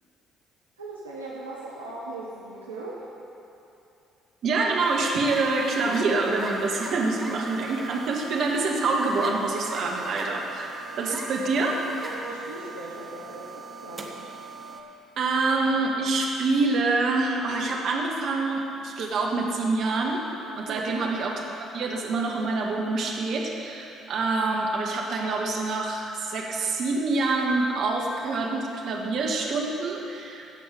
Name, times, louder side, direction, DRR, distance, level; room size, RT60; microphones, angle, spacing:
voice 1, 0.8-3.0 12.0-14.1 20.7-21.0, right 2 dB, 90° right, -5 dB, 1.0 m, -39 dB
voice 2, 4.4-11.9 15.2-20.2 20.5-21.4 21.7-30.5, right 3 dB, 60° right, 0 dB, 1.6 m, -26 dB
sound 1, 4.8-14.8, right 3 dB, 30° right, 1.4 m, -39 dB
16.0 x 5.5 x 6.6 m, 2.8 s
hypercardioid pair, 50°, 0 cm